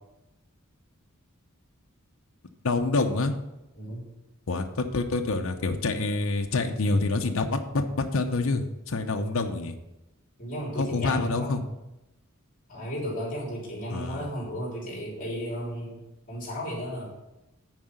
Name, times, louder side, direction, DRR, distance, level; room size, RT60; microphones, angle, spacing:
voice 1, 2.6-3.3 4.5-9.7 10.7-11.6 13.9-14.3, left 3 dB, 70° left, 4 dB, 0.7 m, -27 dB
voice 2, 3.8-4.1 10.4-11.6 12.7-16.0 16.3-17.1, equal, 40° left, -4 dB, 3.2 m, -34 dB
9.3 x 4.8 x 6.5 m, 0.95 s
head